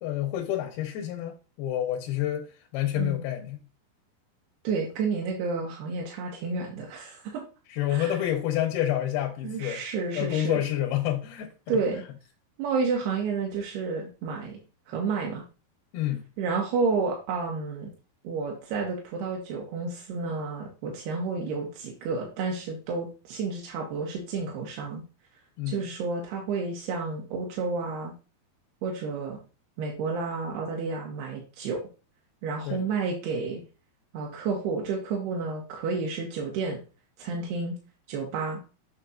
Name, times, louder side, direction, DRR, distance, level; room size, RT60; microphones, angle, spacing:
voice 1, 0.0-3.6 7.7-9.8 10.1-11.5 15.9-16.2 25.6-25.8 32.7-32.8, left 12 dB, 80° left, 2.7 m, -28 dB
voice 2, 4.6-7.4 7.9-8.2 9.4-10.6 11.7-12.0 12.6-14.6 14.9-15.4 16.4-17.9 18.2-25.0 25.7-28.1 28.8-29.4 29.8-31.8 32.4-33.6 34.1-36.8 37.2-37.8 38.1-38.6, right 4 dB, 85° right, 3.2 m, -30 dB
6.9 x 6.9 x 2.5 m
omnidirectional pair, 4.6 m